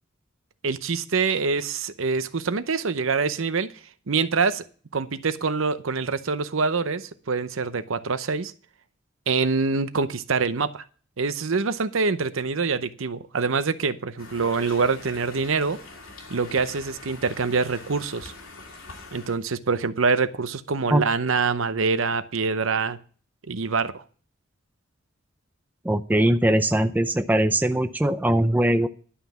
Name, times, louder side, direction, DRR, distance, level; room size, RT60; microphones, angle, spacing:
voice 1, 0.6-3.7 4.1-4.6 4.9-8.5 9.3-10.8 11.2-15.8 16.3-18.3 19.1-23.0 23.5-24.0, right 4 dB, 75° right, 12 dB, 0.7 m, -25 dB
Conversation, 14.2-19.4, left 3 dB, 75° left, 2.6 m, -43 dB
voice 2, 25.8-28.9, right 1 dB, 10° right, 9 dB, 0.4 m, -21 dB
11.5 x 5.8 x 7.1 m, 0.42 s
head